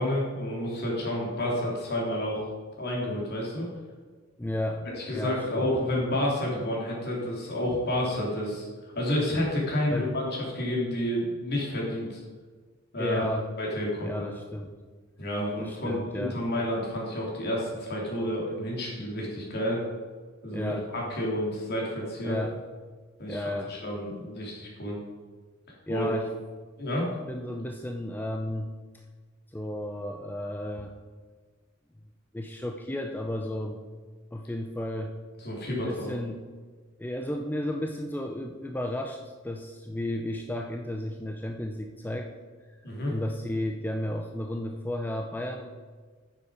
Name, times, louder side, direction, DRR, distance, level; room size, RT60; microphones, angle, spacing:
voice 1, 0.0-2.4 2.8-3.6 5.0-10.3 10.5-12.2 12.9-13.2 13.6-14.3 15.2-19.8 20.4-22.4 23.2-25.0 25.9-26.1 26.8-27.1 35.4-36.1 42.8-43.1, left 1 dB, 55° left, -3 dB, 3.1 m, -30 dB
voice 2, 4.4-5.7 9.9-10.1 13.0-13.5 14.0-14.8 15.6-16.4 20.5-20.9 22.2-22.6 23.3-23.8 25.9-26.3 27.3-28.7 29.5-31.0 32.3-33.8 34.3-35.1 35.7-36.4 37.0-42.3 42.7-42.8 43.1-45.7, left 1 dB, 10° left, 3 dB, 0.5 m, -33 dB
9.7 x 7.2 x 4.9 m, 1.4 s
head